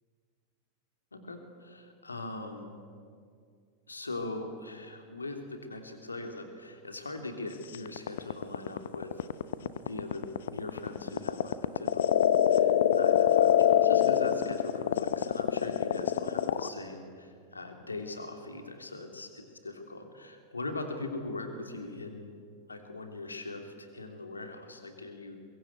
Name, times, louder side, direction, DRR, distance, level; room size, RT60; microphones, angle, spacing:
voice 1, 1.1-2.7 3.9-9.2 9.6-22.4 22.7-25.4, left 2 dB, 80° left, 5 dB, 3.0 m, -41 dB
sound 1, 7.7-16.7, left 10 dB, 60° left, 0.9 m, -24 dB
23.5 x 23.0 x 8.2 m, 2.2 s
figure-of-eight pair, 90°, 0 cm